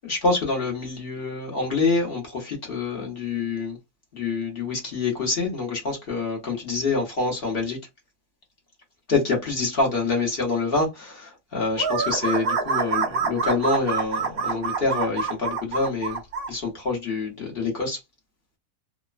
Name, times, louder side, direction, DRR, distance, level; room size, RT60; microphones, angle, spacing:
voice 1, 0.0-3.8 4.1-7.8 9.1-16.2 16.5-18.0, left 3 dB, 45° left, 0.9 m, -26 dB
sound 1, 11.7-16.5, right 5 dB, 80° right, 0.5 m, -26 dB
3.1 x 2.1 x 2.4 m
omnidirectional pair, 1.8 m